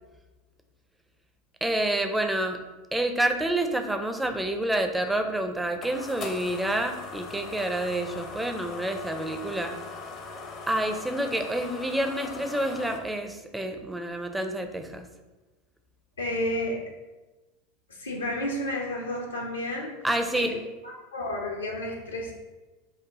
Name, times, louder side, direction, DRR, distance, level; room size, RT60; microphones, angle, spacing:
voice 1, 1.6-2.6 2.9-9.8 10.7-15.1 20.0-20.5, right 1 dB, 5° right, 6 dB, 0.4 m, -28 dB
sound 1, 5.0-13.0, left 4 dB, 40° left, 0.6 m, -40 dB
voice 2, 16.2-16.8 17.9-19.9 20.3-22.3, left 1 dB, 80° left, -1 dB, 0.8 m, -31 dB
4.8 x 2.2 x 3.6 m, 1.2 s
figure-of-eight pair, 85°, 0 cm